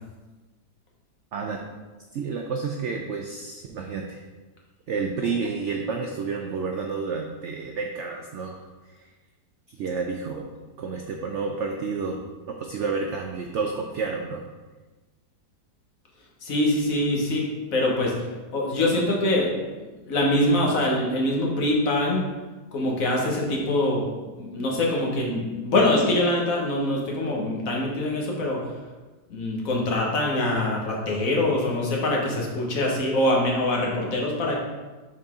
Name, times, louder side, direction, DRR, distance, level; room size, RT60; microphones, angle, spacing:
voice 1, 1.3-1.6 2.1-4.2 4.9-8.7 9.0-9.1 9.7-10.5 10.8-12.2 12.5-14.5, right 4 dB, 75° right, 2 dB, 0.6 m, -30 dB
voice 2, 16.4-18.1 18.5-19.5 20.1-22.2 22.7-24.0 24.4-28.6 29.3-34.6, left 1 dB, 55° left, -2 dB, 1.4 m, -24 dB
6.5 x 4.1 x 3.5 m, 1.3 s
omnidirectional pair, 1.8 m